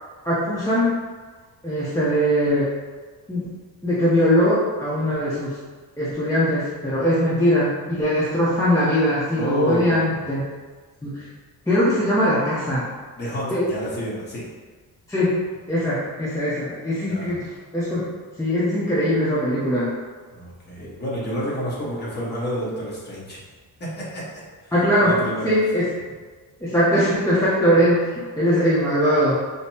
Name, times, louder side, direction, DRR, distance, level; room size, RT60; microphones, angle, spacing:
voice 1, 0.2-0.9 1.6-2.7 3.3-3.4 3.8-5.6 6.0-10.4 11.0-11.3 11.7-12.8 13.5-13.7 15.1-15.4 15.7-18.0 18.4-19.9 20.8-20.9 24.7-25.2 25.4-25.9 26.6-29.4, equal, 10° left, -10 dB, 0.6 m, -21 dB
voice 2, 9.4-10.2 13.1-14.5 17.1-17.4 20.3-23.4 23.8-24.2 24.6-25.5, equal, 25° left, -7 dB, 1.2 m, -30 dB
5.1 x 2.0 x 2.7 m, 1.4 s
cardioid pair, 130°, 38 cm